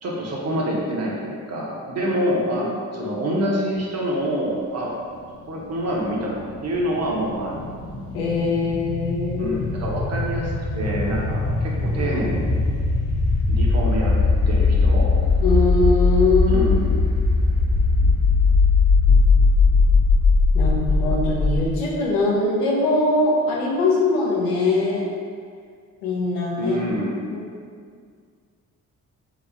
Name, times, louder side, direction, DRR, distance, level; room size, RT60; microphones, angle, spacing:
voice 1, 0.0-4.9 5.5-7.6 9.4-12.6 13.5-14.1 14.5-15.1 16.5-17.0 26.6-27.2, equal, 45° right, -3 dB, 0.7 m, -26 dB
sound 1, 5.8-21.7, left 3 dB, 40° left, 0.5 m, -20 dB
voice 2, 8.1-9.6 12.0-12.1 15.4-16.7 20.5-25.0 26.0-26.8 27.3-27.4, left 2 dB, 85° left, -4 dB, 0.6 m, -22 dB
2.9 x 2.0 x 2.4 m, 2.1 s
hypercardioid pair, 45°, 38 cm